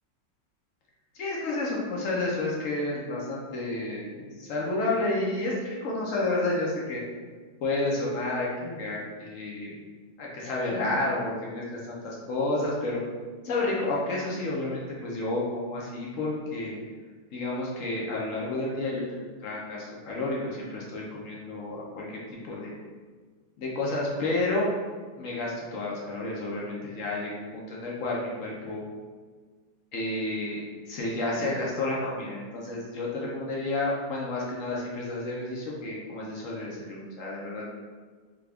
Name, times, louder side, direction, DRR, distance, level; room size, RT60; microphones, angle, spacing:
voice 1, 1.1-7.0 7.6-9.7 10.2-13.0 13.4-16.8 17.3-22.7 23.6-24.7 25.2-28.8 29.9-37.6, left 2 dB, 65° left, -4 dB, 0.8 m, -30 dB
3.6 x 2.3 x 3.4 m, 1.5 s
omnidirectional pair, 2.0 m